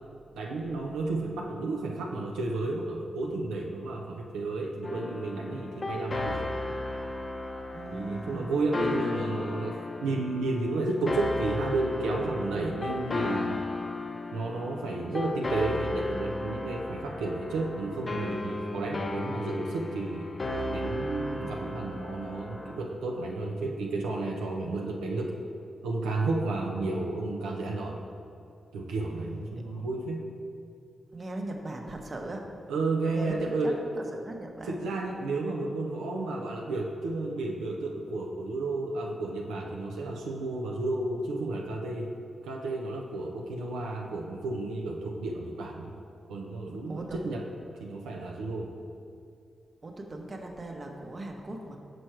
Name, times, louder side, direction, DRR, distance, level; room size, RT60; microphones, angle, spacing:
voice 1, 0.3-6.5 7.9-13.7 14.3-20.3 20.7-25.4 25.8-28.0 28.7-30.3 32.7-33.8 34.6-42.1 42.4-46.0 46.3-47.5 47.8-48.7, right 2 dB, 90° right, 0 dB, 0.4 m, -32 dB
sound 1, 4.8-22.8, left 2 dB, 45° left, 0.6 m, -34 dB
voice 2, 7.7-8.5 29.1-29.6 31.1-32.4 33.1-34.8 46.9-47.3 49.8-51.8, right 2 dB, 45° right, 2 dB, 0.9 m, -39 dB
6.1 x 4.6 x 4.5 m, 2.5 s
supercardioid pair, 45°, 0 cm